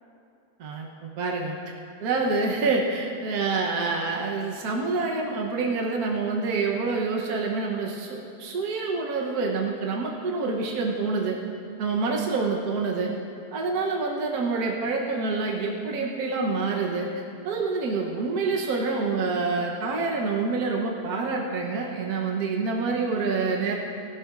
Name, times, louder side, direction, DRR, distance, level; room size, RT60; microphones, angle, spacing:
voice 1, 0.6-1.5 2.0-11.4 11.8-13.1 13.5-17.1 17.4-23.8, right 4 dB, 65° right, -1 dB, 1.5 m, -27 dB
18.0 x 12.5 x 2.5 m, 2.5 s
omnidirectional pair, 1.7 m